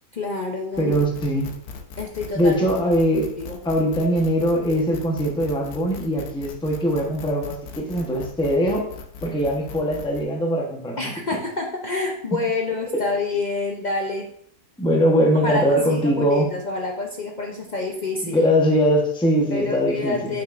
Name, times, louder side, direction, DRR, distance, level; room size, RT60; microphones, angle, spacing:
voice 1, 0.1-1.0 2.0-2.6 3.4-3.6 11.0-14.3 15.3-18.4 19.5-20.4, left 3 dB, 50° left, 1 dB, 0.5 m, -28 dB
sound 1, 0.7-10.2, left 5 dB, 90° left, 1.3 m, -39 dB
voice 2, 0.8-1.5 2.3-3.3 3.6-8.9 9.2-11.1 14.8-16.5 18.2-20.4, equal, 5° left, 0 dB, 0.8 m, -21 dB
7.2 x 5.9 x 2.5 m, 0.66 s
omnidirectional pair, 1.6 m